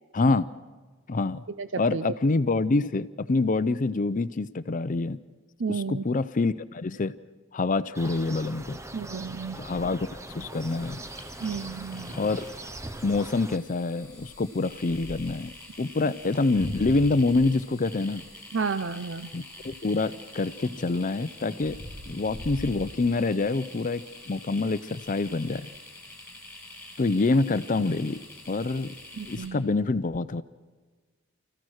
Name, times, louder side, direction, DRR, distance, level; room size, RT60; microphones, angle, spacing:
voice 1, 0.1-0.5 1.1-1.4 1.8-5.2 5.7-7.1 7.5-8.8 9.6-11.0 12.2-12.5 13.0-15.5 15.8-18.3 19.3-21.8 22.1-25.7 27.0-28.2 28.5-28.9 29.3-30.4, left 3 dB, 40° left, 14 dB, 0.5 m, -26 dB
voice 2, 1.6-2.0 5.6-6.0 8.9-9.6 11.4-12.1 16.0-16.1 18.5-19.3 29.2-29.6, right 5 dB, 65° right, 12 dB, 0.6 m, -32 dB
sound 1, 7.9-13.6, right 2 dB, 15° right, 0.7 m, -41 dB
sound 2, 9.8-11.2 11.8-11.9 12.1-12.4 12.9-13.2 14.0-15.5 16.2-20.1 20.5-23.6 24.0-24.3 24.6-24.7 25.0-25.7 27.4-27.5 27.8-28.1 28.4-29.4, equal, 90° right, 3.2 m, -43 dB
sound 3, 10.5-29.5, left 2 dB, 5° left, 5.2 m, -46 dB
29.0 x 15.0 x 6.4 m, 1.4 s
head